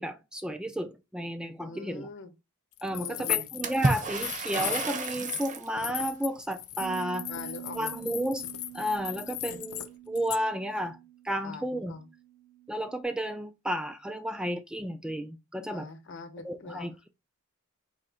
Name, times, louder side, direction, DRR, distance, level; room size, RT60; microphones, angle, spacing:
voice 1, 0.0-2.1 2.8-7.3 7.7-8.4 8.7-11.0 11.2-12.0 12.7-15.9 16.4-17.1, right 1 dB, 5° right, 0.3 m, -32 dB
voice 2, 1.6-2.3 2.9-3.5 7.3-8.1 9.5-9.6 11.4-12.1 15.7-16.9, left 3 dB, 60° left, 0.9 m, -43 dB
sound 1, 2.8-5.5 5.8-9.9 10.2-10.4, left 14 dB, 75° left, 0.5 m, -36 dB
Water / Splash splatter, 3.6-5.7, right 3 dB, 35° right, 0.7 m, -30 dB
sound 2, 6.8-13.1, right 13 dB, 85° right, 0.6 m, -47 dB
4.3 x 2.8 x 3.9 m
head